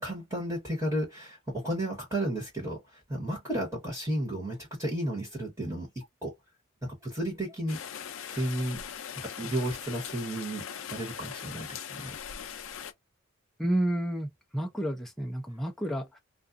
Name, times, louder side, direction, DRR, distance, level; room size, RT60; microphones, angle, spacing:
voice 1, 0.0-6.3 6.8-7.8 8.3-8.8 9.2-10.6 10.9-12.2, right 1 dB, 15° right, 1.2 m, -33 dB
Rain, 7.7-12.9, left 8 dB, 75° left, 0.5 m, -40 dB
voice 2, 13.6-16.2, right 1 dB, ahead, 0.5 m, -30 dB
2.4 x 2.4 x 2.5 m
head